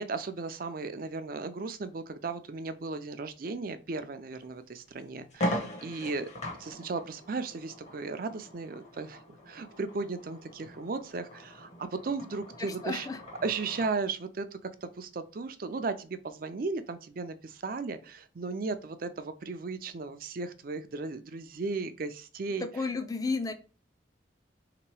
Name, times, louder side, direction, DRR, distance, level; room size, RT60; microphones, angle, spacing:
voice 1, 0.0-6.3 6.6-13.1 13.4-22.7, right 4 dB, 50° right, 0.4 m, -36 dB
sound 1, 4.3-4.4 4.9-5.0 5.3-14.0, equal, 40° left, 0.9 m, -40 dB
voice 2, 12.6-13.2 22.6-23.5, left 3 dB, 20° left, 0.4 m, -32 dB
3.7 x 2.9 x 4.6 m
head